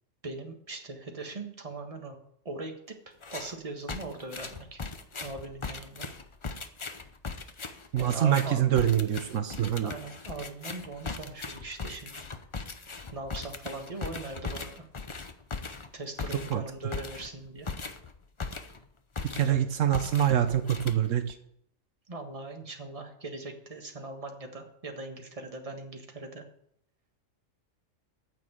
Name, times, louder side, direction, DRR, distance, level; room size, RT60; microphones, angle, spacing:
voice 1, 0.2-2.2 2.4-3.0 3.3-4.8 5.2-6.1 8.0-8.6 9.8-12.2 13.1-14.8 15.9-17.7 19.3-19.6 22.1-26.4, right 2 dB, 30° right, 3 dB, 1.5 m, -40 dB
sound 1, 3.2-3.6 3.9-18.9 19.2-19.6 19.9-21.3, left 4 dB, 30° left, 0.7 m, -39 dB
voice 2, 7.9-9.9 16.5-16.6 19.3-21.3, right 10 dB, 80° right, 9 dB, 1.1 m, -25 dB
9.3 x 7.1 x 7.8 m, 0.72 s
omnidirectional pair, 1.3 m